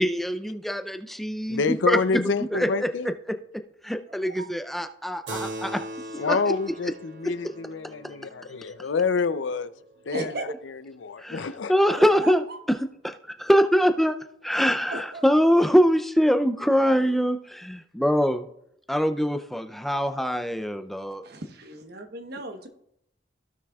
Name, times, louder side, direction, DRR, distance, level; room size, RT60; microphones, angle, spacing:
voice 1, 0.0-2.2 2.5-3.4 3.8-5.8 6.2-6.5 11.2-12.8 13.0-14.2 14.4-18.5 18.9-21.2, equal, ahead, 0.4 m, -23 dB
voice 2, 1.5-3.1 6.2-9.7 10.1-10.3 10.6-11.7, left 4 dB, 85° left, 0.5 m, -27 dB
Keyboard (musical), 5.3-10.1, right 1 dB, 80° right, 2.5 m, -40 dB
voice 3, 10.1-10.5 12.0-12.6 14.9-15.3 21.2-22.7, right 2 dB, 60° right, 1.1 m, -36 dB
16.0 x 6.1 x 2.3 m
head